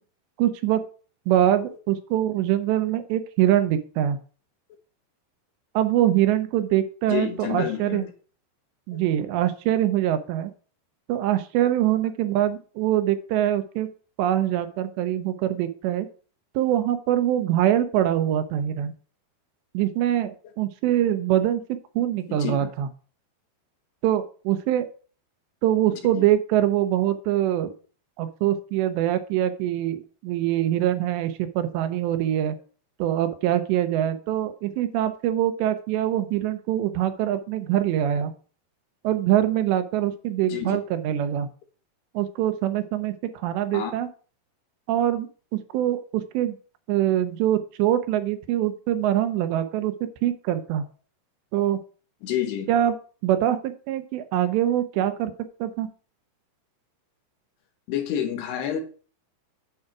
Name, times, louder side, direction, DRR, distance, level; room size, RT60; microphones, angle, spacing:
voice 1, 0.4-0.8 1.3-4.2 5.7-8.0 8.9-10.5 11.1-13.9 14.2-16.1 16.6-18.9 19.7-21.6 22.0-22.9 24.0-24.9 25.6-27.7 28.2-32.6 33.0-38.3 39.0-41.5 42.1-44.1 44.9-45.3 45.5-46.6 46.9-49.9 50.2-50.8 51.5-51.8 52.7-53.0 53.2-55.3 55.6-55.9, right 12 dB, 85° right, 9 dB, 3.1 m, -24 dB
voice 2, 7.1-8.1 8.9-9.0 22.3-22.7 25.9-26.3 40.4-40.8 43.7-43.9 49.0-49.1 52.2-52.7 57.9-58.8, left 9 dB, 75° left, 5 dB, 3.3 m, -29 dB
9.3 x 4.8 x 6.0 m, 0.39 s
omnidirectional pair, 4.9 m